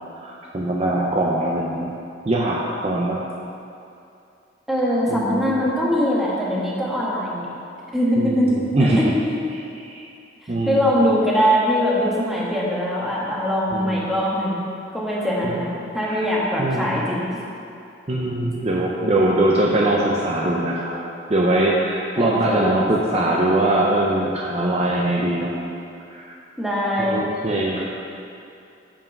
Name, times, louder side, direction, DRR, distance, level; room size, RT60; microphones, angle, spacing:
voice 1, 0.1-1.9 2.3-3.2 5.1-5.6 8.2-9.0 9.8-10.0 10.5-11.0 13.7-14.0 15.4-15.6 16.1-16.3 16.6-17.0 18.1-21.0 21.3-25.5 26.1-26.3 27.0-27.8, right 1 dB, 35° right, -3 dB, 0.6 m, -22 dB
voice 2, 4.7-7.5 7.9-8.5 8.8-9.4 10.6-14.6 14.9-15.7 15.9-17.3 22.1-22.8 26.6-27.2, equal, ahead, -6 dB, 1.3 m, -22 dB
7.2 x 5.5 x 5.3 m, 2.6 s
head